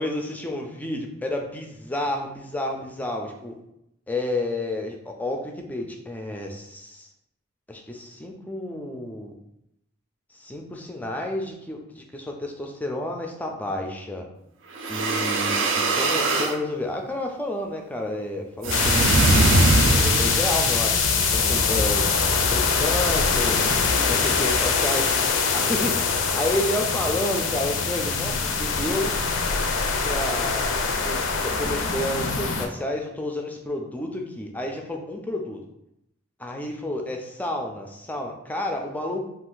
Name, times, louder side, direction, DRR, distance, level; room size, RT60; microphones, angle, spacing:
voice 1, 0.0-3.6 4.1-7.1 7.7-9.3 10.4-14.3 14.9-19.6 19.9-21.0 21.3-22.0 22.5-23.6 24.0-25.1 25.5-29.1 30.0-30.8 31.0-35.6 36.4-39.2, left 1 dB, 10° left, 1 dB, 0.3 m, -30 dB
sound 1, 14.7-16.6 18.6-20.5, right 2 dB, 65° right, 0.4 m, -21 dB
sound 2, 18.7-32.7, left 5 dB, 75° left, 0.4 m, -23 dB
2.5 x 2.4 x 3.7 m, 0.81 s
head